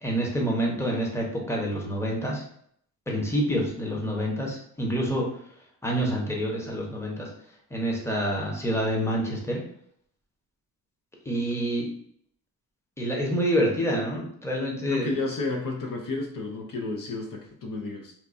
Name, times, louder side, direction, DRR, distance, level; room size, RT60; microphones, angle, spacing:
voice 1, 0.0-2.4 3.1-5.3 5.8-7.3 7.7-9.6 11.3-11.9 13.0-15.1, equal, 5° left, -1 dB, 0.9 m, -27 dB
voice 2, 14.9-18.1, left 2 dB, 55° left, 1 dB, 0.6 m, -31 dB
4.3 x 2.3 x 2.5 m, 0.66 s
cardioid pair, 100°, 40 cm